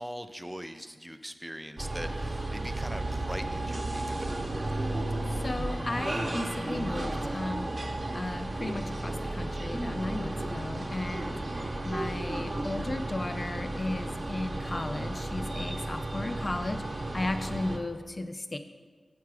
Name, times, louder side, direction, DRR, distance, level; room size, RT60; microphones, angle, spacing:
voice 1, 0.0-4.4, equal, 5° right, 7 dB, 0.5 m, -41 dB
sound 1, 1.8-17.8, right 1 dB, 50° right, 0.9 m, -33 dB
voice 2, 5.3-7.7 8.1-11.4 11.8-18.6, left 2 dB, 45° left, 8 dB, 0.5 m, -35 dB
7.3 x 6.0 x 4.7 m, 1.5 s
cardioid pair, 45°, 0 cm